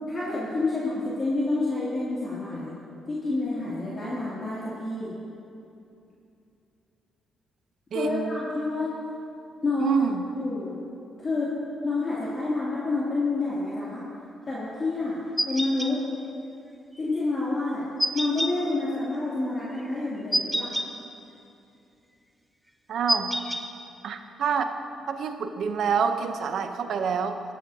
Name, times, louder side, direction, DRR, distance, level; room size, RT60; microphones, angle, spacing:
voice 1, 0.1-2.7 3.1-5.1 7.9-8.9 9.6-10.0 10.4-10.7 11.2-11.5 11.8-14.0 14.5-16.0 17.0-17.8 18.1-20.8, left 2 dB, 40° left, -9 dB, 2.7 m, -28 dB
voice 2, 7.9-8.3 9.8-10.2 22.9-23.3 24.0-24.7 25.1-27.4, right 6 dB, 70° right, 7 dB, 0.8 m, -27 dB
sound 1, 15.4-15.9 18.0-18.5 20.3-20.9 23.1-23.6, equal, ahead, 0.8 m, -26 dB
17.0 x 12.0 x 2.8 m, 2.7 s
cardioid pair, 85°, 0 cm